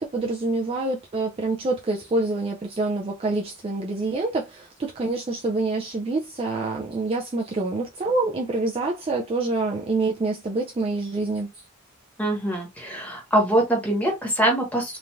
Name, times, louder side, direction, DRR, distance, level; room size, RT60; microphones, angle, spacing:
voice 1, 0.0-11.5, right 2 dB, 25° right, 0.3 m, -26 dB
voice 2, 12.2-15.0, right 1 dB, 5° left, 1.0 m, -23 dB
3.1 x 2.4 x 2.2 m
head